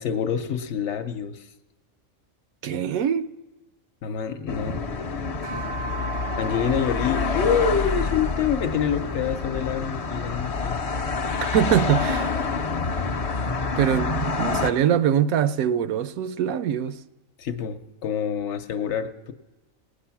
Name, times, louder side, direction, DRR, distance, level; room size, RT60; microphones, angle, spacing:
voice 1, 0.0-1.5 4.0-4.9 6.4-10.8 17.4-19.3, left 7 dB, 60° left, 0.9 m, -26 dB
voice 2, 2.6-3.3 11.5-12.3 13.8-17.0, right 9 dB, 85° right, 1.1 m, -23 dB
sound 1, 4.5-14.7, left 4 dB, 45° left, 0.4 m, -27 dB
sound 2, 5.4-10.0, right 5 dB, 65° right, 0.7 m, -40 dB
19.0 x 8.8 x 5.7 m
omnidirectional pair, 1.4 m